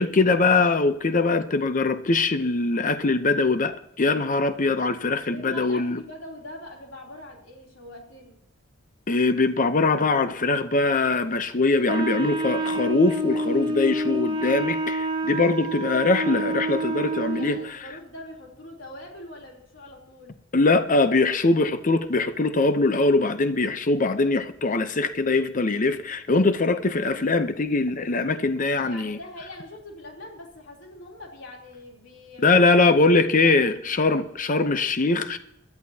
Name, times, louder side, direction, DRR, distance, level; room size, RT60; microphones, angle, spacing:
voice 1, 0.0-6.0 9.1-17.6 20.5-29.2 32.4-35.4, left 3 dB, 40° left, 0.7 m, -22 dB
voice 2, 5.3-8.4 17.3-20.3 28.8-32.9 33.4-33.6, left 1 dB, 70° left, 3.3 m, -42 dB
Wind instrument woodwind instrument, 11.9-17.7, right 1 dB, 25° right, 0.9 m, -28 dB
21.5 x 13.0 x 2.8 m
head